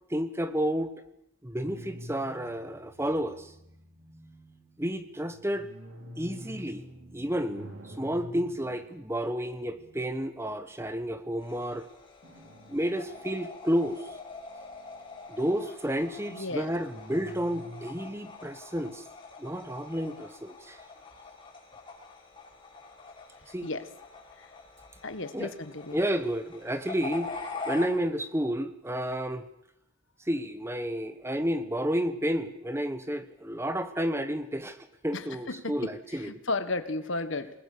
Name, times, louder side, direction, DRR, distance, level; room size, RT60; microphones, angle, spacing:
voice 1, 0.1-1.0 1.4-3.5 4.8-5.7 6.2-6.8 7.1-11.9 12.7-14.1 15.3-19.0 19.4-20.8 23.5-23.7 25.3-25.5 25.9-27.4 27.6-29.5 30.2-34.8 35.0-36.3, equal, 10° right, 11 dB, 1.1 m, -31 dB
sound 1, 1.6-11.0 12.2-13.8 14.2-15.3 16.6-18.3, equal, 55° right, 4.5 m, -48 dB
sound 2, 11.4-27.9, left 3 dB, 20° left, 5.5 m, -44 dB
voice 2, 16.3-16.7 23.6-23.8 24.4-24.5 25.0-26.0 35.1-35.8 36.2-37.5, left 2 dB, 55° left, 11 dB, 1.7 m, -34 dB
28.0 x 20.5 x 6.8 m, 0.82 s
head